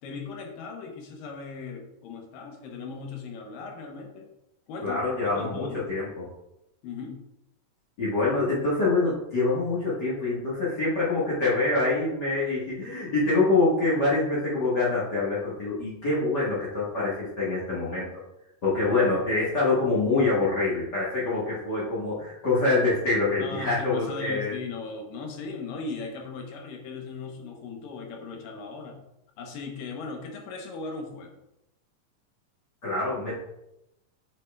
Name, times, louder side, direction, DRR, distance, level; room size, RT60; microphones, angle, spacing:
voice 1, 0.0-4.3 4.7-5.0 5.3-5.8 6.8-7.2 23.4-29.0 29.4-31.4, left 4 dB, 90° left, 2 dB, 2.7 m, -38 dB
voice 2, 4.8-6.2 8.0-18.2 18.6-24.6 32.8-33.4, left 3 dB, 45° left, -8 dB, 1.5 m, -25 dB
8.8 x 5.3 x 2.3 m, 0.87 s
omnidirectional pair, 3.9 m